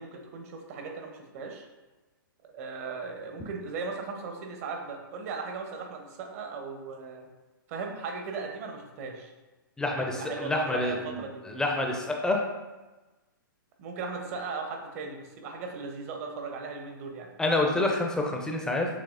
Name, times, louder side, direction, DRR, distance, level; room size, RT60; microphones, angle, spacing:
voice 1, 0.0-1.6 2.4-7.3 7.7-9.3 9.9-11.4 13.8-17.3, right 4 dB, 45° right, 3 dB, 0.8 m, -37 dB
voice 2, 9.8-12.4 17.4-18.9, left 2 dB, 5° left, 1 dB, 0.4 m, -28 dB
6.7 x 2.8 x 2.5 m, 1.2 s
hypercardioid pair, 130°, 11 cm